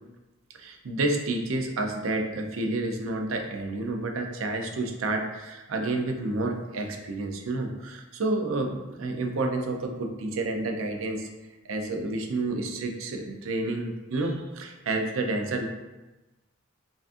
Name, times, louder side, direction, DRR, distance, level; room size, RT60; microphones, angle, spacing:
voice 1, 0.5-11.3 11.6-15.7, right 2 dB, 80° right, 3 dB, 0.5 m, -30 dB
5.0 x 2.4 x 2.5 m, 1.1 s
head